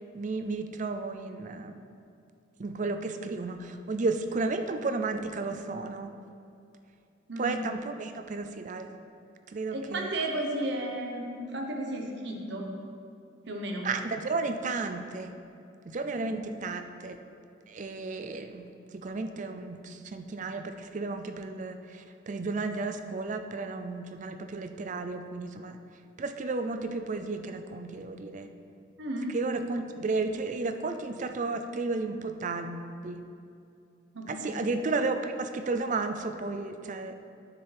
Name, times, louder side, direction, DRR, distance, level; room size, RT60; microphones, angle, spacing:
voice 1, 0.1-1.8 2.6-6.1 7.4-8.9 9.5-10.1 13.8-15.3 15.9-17.2 17.7-18.6 18.9-25.8 26.2-28.5 29.3-33.2 34.3-37.2, right 3 dB, 40° right, 8 dB, 0.4 m, -33 dB
voice 2, 7.3-7.6 9.7-12.7 13.5-13.9 16.1-16.3 29.0-29.3 34.1-34.7, right 1 dB, 60° right, 1 dB, 1.1 m, -34 dB
9.6 x 7.1 x 3.4 m, 2.5 s
head